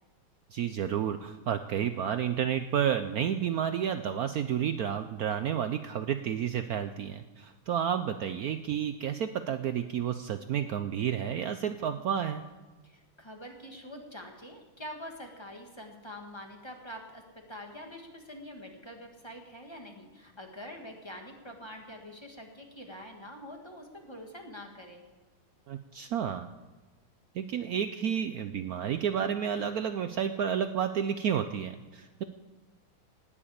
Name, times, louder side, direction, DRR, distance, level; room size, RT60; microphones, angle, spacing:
voice 1, 0.5-12.4 25.7-26.5 27.3-32.2, right 9 dB, 85° right, 9 dB, 0.8 m, -31 dB
voice 2, 12.8-17.2 17.5-25.0, equal, 15° left, 2 dB, 1.7 m, -45 dB
19.0 x 7.2 x 8.5 m, 1.2 s
omnidirectional pair, 2.3 m